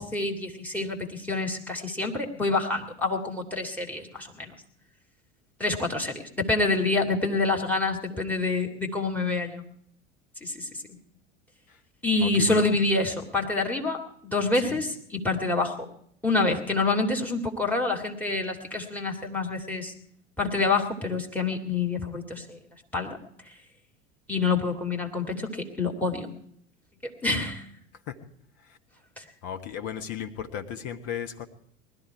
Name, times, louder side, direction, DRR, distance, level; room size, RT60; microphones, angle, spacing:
voice 1, 0.0-4.5 5.6-9.6 10.4-11.0 12.0-15.9 16.2-19.9 20.4-22.6 22.9-23.2 23.5-23.6 24.3-26.3 27.2-27.6 29.2-29.3, left 3 dB, 5° left, 5 dB, 2.2 m, -27 dB
voice 2, 12.2-12.6 14.6-14.8 28.1-28.2 29.4-31.5, left 9 dB, 45° left, 7 dB, 1.3 m, -34 dB
20.0 x 12.5 x 4.8 m, 0.67 s
figure-of-eight pair, 75°, 34 cm